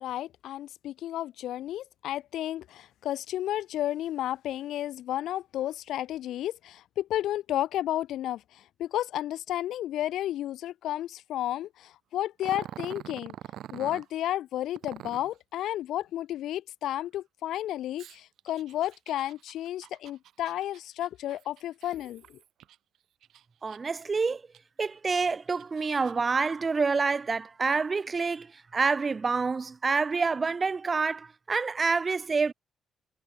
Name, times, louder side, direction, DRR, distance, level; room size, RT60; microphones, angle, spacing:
voice 1, 0.0-13.3 13.7-22.4, left 13 dB, 80° left, 1.2 m, -32 dB
Growling, 12.4-14.1 14.8-15.4 18.0-22.8 23.2-24.0 24.5-24.6 25.3-26.3, right 11 dB, 75° right, 3.1 m, -45 dB
voice 2, 23.6-24.4 24.8-32.5, right 4 dB, 30° right, 0.5 m, -27 dB
cardioid pair, 90°, 0 cm